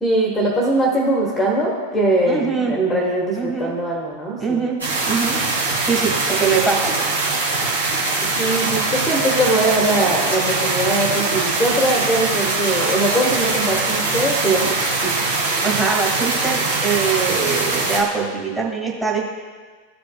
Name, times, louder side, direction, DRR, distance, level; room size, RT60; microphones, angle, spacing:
voice 1, 0.0-4.7 8.4-14.8 15.0-15.2, right 1 dB, 10° left, -2 dB, 1.1 m, -21 dB
voice 2, 2.2-2.7 3.4-3.7 4.4-4.8 5.0-5.4 5.8-6.9 15.6-19.2, right 5 dB, 5° right, -4 dB, 1.6 m, -22 dB
sound 1, 4.8-18.0, right 3 dB, 75° right, 1.9 m, -22 dB
14.0 x 5.1 x 2.3 m, 1.5 s
figure-of-eight pair, 90°, 0 cm